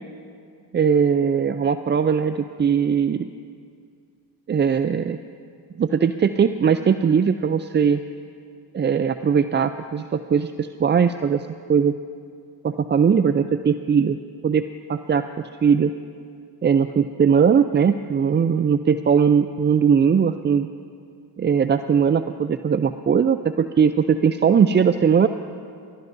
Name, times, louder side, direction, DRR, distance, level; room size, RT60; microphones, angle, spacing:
voice 1, 0.7-3.3 4.5-5.2 5.8-8.0 8.7-11.9 12.6-14.2 14.4-15.9 16.6-20.7 21.4-25.3, right 7 dB, 25° right, 10 dB, 0.4 m, -20 dB
30.0 x 13.0 x 2.6 m, 2.3 s
supercardioid pair, 55°, 46 cm